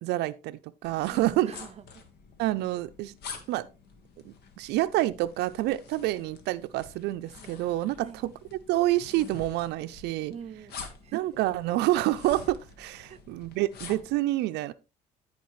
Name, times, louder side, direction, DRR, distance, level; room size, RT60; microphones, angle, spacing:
voice 1, 0.0-1.5 2.4-3.1 3.5-3.7 4.3-8.3 8.7-10.3 11.1-14.7, right 16 dB, 80° right, 0.4 m, -28 dB
sound 1, 0.8-14.2, left 5 dB, 70° left, 1.6 m, -47 dB
voice 2, 1.1-2.1 8.0-8.3 10.3-11.2 13.1-13.2, right 7 dB, 40° right, 0.6 m, -44 dB
14.5 x 4.8 x 3.1 m
cardioid pair, 110°, 17 cm